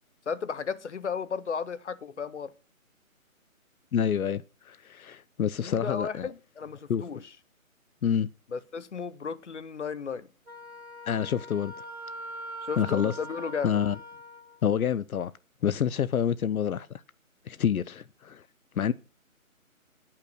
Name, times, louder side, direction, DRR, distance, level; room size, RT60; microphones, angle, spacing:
voice 1, 0.3-2.5 5.6-7.3 8.5-10.3 12.6-13.8, left 6 dB, 55° left, 0.9 m, -34 dB
voice 2, 3.9-6.3 6.9-7.0 8.0-8.3 11.1-11.8 12.8-13.1 13.6-14.0 14.6-15.3 15.6-16.9 17.5-18.4 18.8-18.9, left 8 dB, 85° left, 0.6 m, -27 dB
Wind instrument woodwind instrument, 10.5-14.6, right 1 dB, 90° right, 2.4 m, -42 dB
10.5 x 5.7 x 6.3 m
hypercardioid pair, 170°, 42 cm